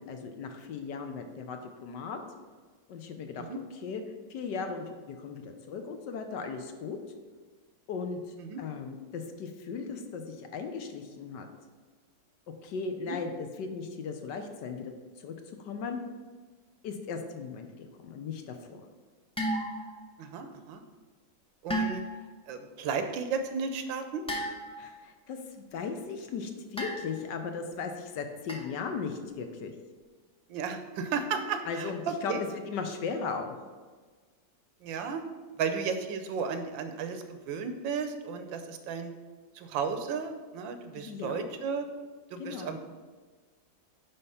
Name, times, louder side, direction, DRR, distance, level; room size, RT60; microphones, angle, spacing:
voice 1, 0.0-2.2 2.9-4.0 4.3-7.0 7.9-8.2 8.6-11.5 12.6-14.9 15.2-15.3 15.6-16.0 16.8-18.8 24.8-29.7 31.7-33.7 40.9-41.5 42.4-42.8, left 5 dB, 70° left, 6 dB, 1.4 m, -37 dB
sound 1, 19.4-20.1 21.7-22.3 24.3-25.0 26.8-27.4 28.5-28.8, right 1 dB, 5° left, 0.5 m, -34 dB
voice 2, 20.2-20.8 21.6-22.0 22.5-24.2 30.5-32.4 34.8-35.2 35.6-39.1 39.6-41.9 42.3-42.8, right 5 dB, 80° right, 8 dB, 1.5 m, -34 dB
9.9 x 3.6 x 5.5 m, 1.4 s
omnidirectional pair, 2.0 m